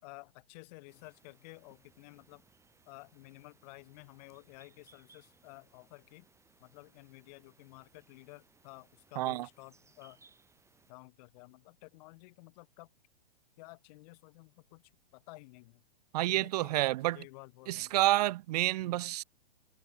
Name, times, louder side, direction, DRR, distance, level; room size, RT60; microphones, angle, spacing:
voice 1, 0.0-2.4 2.9-6.3 6.6-10.2 10.9-12.9 13.6-15.8 16.3-18.0 18.8-19.0, left 25 dB, 45° left, 7.5 m, -53 dB
sound 1, 0.9-10.9, right 4 dB, 10° right, 5.3 m, -66 dB
voice 2, 9.2-9.5 16.1-17.2 17.7-19.2, right 16 dB, 45° right, 0.5 m, -29 dB
hypercardioid pair, 125°, 29 cm